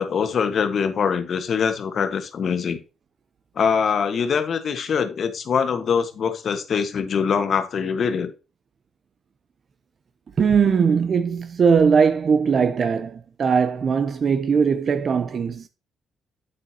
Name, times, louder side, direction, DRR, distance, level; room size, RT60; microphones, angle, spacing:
voice 1, 0.0-2.8 3.5-8.3, left 6 dB, 55° left, 1.4 m, -23 dB
voice 2, 10.4-15.7, right 6 dB, 50° right, 0.7 m, -20 dB
8.5 x 8.2 x 2.8 m
cardioid pair, 90°, 0 cm